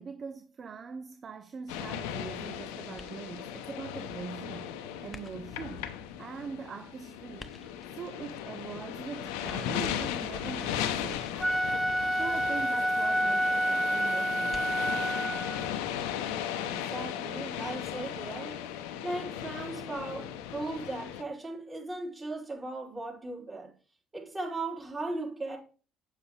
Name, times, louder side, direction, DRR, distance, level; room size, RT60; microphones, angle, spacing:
voice 1, 0.0-5.9 6.2-7.5 7.9-11.3 12.1-14.7, right 6 dB, 40° right, 0.6 m, -42 dB
sound 1, 1.7-21.2, left 10 dB, 75° left, 0.7 m, -37 dB
sound 2, 3.0-3.5 5.1-5.7 7.4-8.0 9.5-10.1 11.1-11.7 14.5-15.1, left 2 dB, 20° left, 1.0 m, -50 dB
Wind instrument woodwind instrument, 11.3-15.7, equal, 5° right, 0.6 m, -28 dB
voice 2, 16.6-18.6 19.0-23.7 24.1-25.6, right 2 dB, 25° right, 4.3 m, -37 dB
8.2 x 7.2 x 3.3 m
hypercardioid pair, 60°, 0 cm